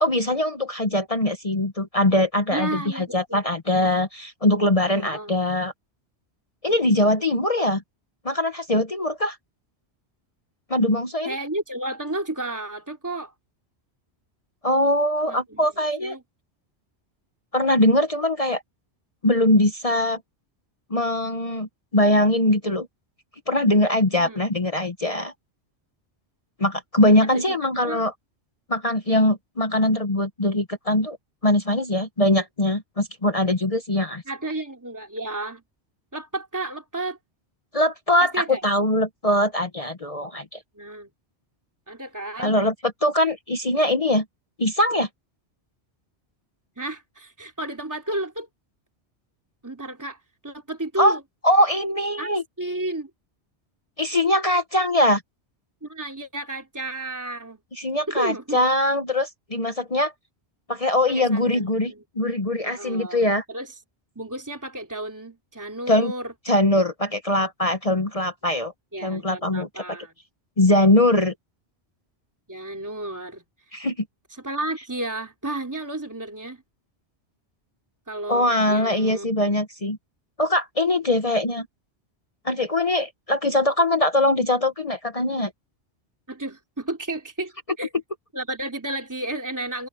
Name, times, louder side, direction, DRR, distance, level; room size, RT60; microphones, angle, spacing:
voice 1, 0.0-5.7 6.6-7.8 8.2-9.4 10.7-11.4 14.6-16.2 17.5-18.6 19.2-20.2 20.9-22.9 23.5-25.3 26.6-28.1 28.7-31.2 31.4-34.2 37.7-40.6 42.4-44.2 44.6-45.1 51.0-51.2 51.4-52.4 54.0-55.2 57.7-60.1 60.7-63.4 65.9-66.1 66.5-68.7 69.0-69.8 70.6-71.3 73.7-74.0 78.3-80.0 80.4-81.7 82.4-85.5, left 1 dB, 35° left, 1.1 m, -22 dB
voice 2, 2.5-3.4 4.9-5.4 6.7-6.8 11.2-13.3 15.3-15.7 16.0-16.2 24.2-24.4 27.2-27.6 27.8-28.0 34.3-35.6 36.1-37.2 38.2-38.6 40.7-41.1 41.9-42.6 46.8-48.5 49.6-50.2 50.4-51.2 52.2-53.1 55.8-57.6 58.1-58.6 61.1-62.0 62.6-63.7 64.1-66.3 68.9-70.1 72.5-73.4 74.4-76.6 78.1-79.3 86.3-87.5 87.8-87.9 88.3-89.9, right 1 dB, 15° right, 3.2 m, -32 dB
omnidirectional pair, 1.1 m